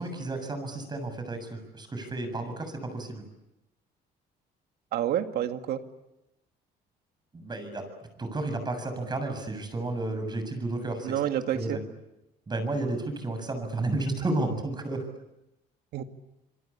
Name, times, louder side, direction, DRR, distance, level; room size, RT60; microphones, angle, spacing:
voice 1, 0.0-3.2 7.3-11.1 11.5-11.8 12.5-15.1, right 2 dB, 25° right, 8 dB, 7.1 m, -32 dB
voice 2, 4.9-5.8 11.0-11.8 15.9-16.0, right 11 dB, 70° right, 7 dB, 2.1 m, -28 dB
26.5 x 23.5 x 8.7 m, 0.91 s
cardioid pair, 110°, 17 cm